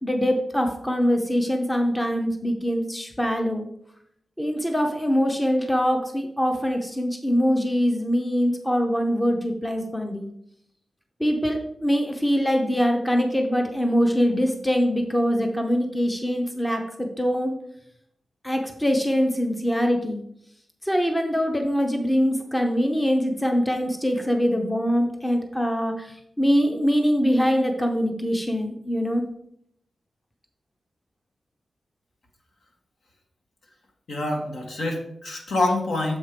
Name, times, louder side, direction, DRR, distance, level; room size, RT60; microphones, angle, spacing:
voice 1, 0.0-3.7 4.4-10.3 11.2-17.5 18.4-20.2 20.8-29.2, equal, 10° left, 3 dB, 0.7 m, -23 dB
voice 2, 34.1-36.2, left 2 dB, 70° left, 1 dB, 1.6 m, -26 dB
7.4 x 4.6 x 5.0 m, 0.73 s
wide cardioid pair, 145°, 0 cm